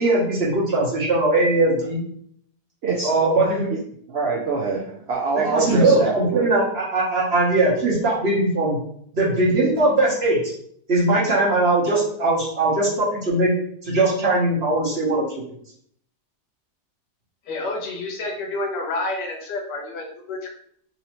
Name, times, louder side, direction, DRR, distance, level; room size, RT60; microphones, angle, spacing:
voice 1, 0.0-2.0 3.0-3.7 5.4-8.8 9.1-10.4 10.9-13.5 13.8-15.4, right 2 dB, 45° right, -6 dB, 1.1 m, -20 dB
voice 2, 4.1-6.5, right 4 dB, 85° right, -3 dB, 0.5 m, -24 dB
voice 3, 17.5-20.5, left 2 dB, 80° left, 1 dB, 1.4 m, -29 dB
4.0 x 2.7 x 3.0 m, 0.66 s
omnidirectional pair, 1.8 m